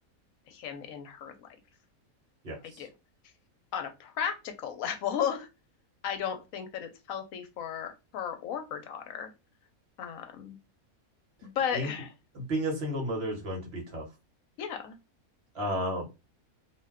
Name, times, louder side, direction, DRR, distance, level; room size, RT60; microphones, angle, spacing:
voice 1, 0.5-1.5 2.8-2.9 3.7-5.5 6.0-9.3 10.0-10.6 11.4-12.1 14.6-15.0, left 8 dB, 75° left, 6 dB, 1.0 m, -34 dB
voice 2, 2.4-2.8 11.7-11.9 12.3-14.0 15.5-16.1, equal, 50° right, 1 dB, 1.1 m, -32 dB
2.5 x 2.2 x 3.4 m, 0.26 s
omnidirectional pair, 1.5 m